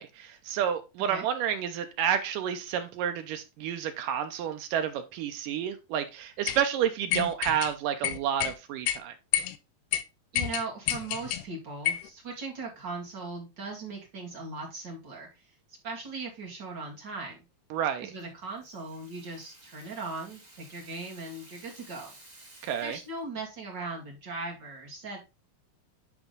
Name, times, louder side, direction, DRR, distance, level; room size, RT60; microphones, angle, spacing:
voice 1, 0.0-9.2 17.7-18.1 22.6-23.0, right 9 dB, 80° right, 2.0 m, -30 dB
sound 1, 6.5-6.6 7.1-7.7 8.0-8.5 8.9-9.0 9.3-9.6 9.9-10.0 10.4-11.4 11.9-12.1, left 12 dB, 90° left, 2.7 m, -29 dB
voice 2, 10.3-15.5 15.8-17.4 18.0-22.1 22.8-25.2, right 3 dB, 35° right, 1.9 m, -39 dB
Rattle (instrument), 18.2-23.3, right 1 dB, 15° right, 1.5 m, -54 dB
10.0 x 3.5 x 3.8 m
omnidirectional pair, 4.5 m